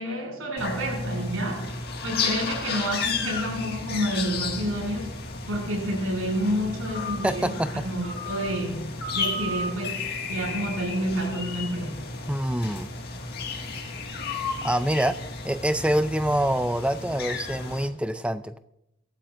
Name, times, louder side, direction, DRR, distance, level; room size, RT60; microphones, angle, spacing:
voice 1, 0.0-12.0, equal, 90° right, 0 dB, 6.7 m, -29 dB
sound 1, 0.6-17.9, left 4 dB, 50° left, 1.9 m, -33 dB
voice 2, 7.2-7.7 12.3-12.9 14.6-15.2 15.4-18.6, right 1 dB, 5° right, 12 dB, 0.4 m, -25 dB
25.5 x 13.0 x 2.6 m, 0.82 s
head